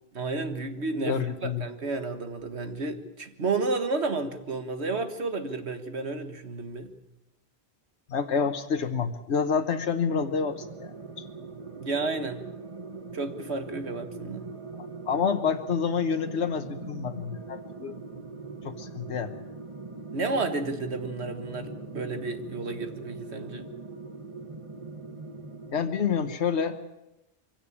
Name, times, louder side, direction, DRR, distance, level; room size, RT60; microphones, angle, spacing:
voice 1, 0.1-6.9 11.8-12.4 13.1-14.5 20.1-23.7, right 3 dB, 80° right, 8 dB, 1.9 m, -31 dB
voice 2, 1.1-1.7 8.1-11.2 14.8-18.0 18.6-19.4 25.7-26.8, left 6 dB, 85° left, 6 dB, 1.4 m, -28 dB
sound 1, 10.1-26.4, right 4 dB, 30° right, 1.3 m, -41 dB
23.5 x 16.5 x 8.6 m, 0.91 s
omnidirectional pair, 1.1 m